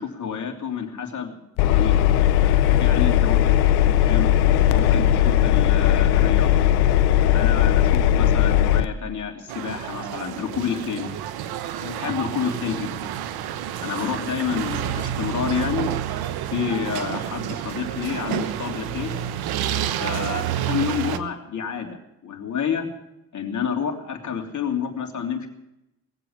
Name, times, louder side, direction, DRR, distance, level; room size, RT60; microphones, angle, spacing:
voice 1, 0.0-1.4 1.6-2.1 2.8-3.4 3.8-4.4 4.7-6.6 7.3-11.1 11.8-13.1 13.8-15.9 16.5-19.2 20.0-22.9 23.3-25.5, left 7 dB, 50° left, 3 dB, 3.1 m, -29 dB
Engine, 1.6-8.9, left 11 dB, 85° left, 0.7 m, -18 dB
sound 1, 9.5-21.2, right 10 dB, 75° right, 1.1 m, -29 dB
20.0 x 7.8 x 8.8 m, 0.87 s
supercardioid pair, 70°, 38 cm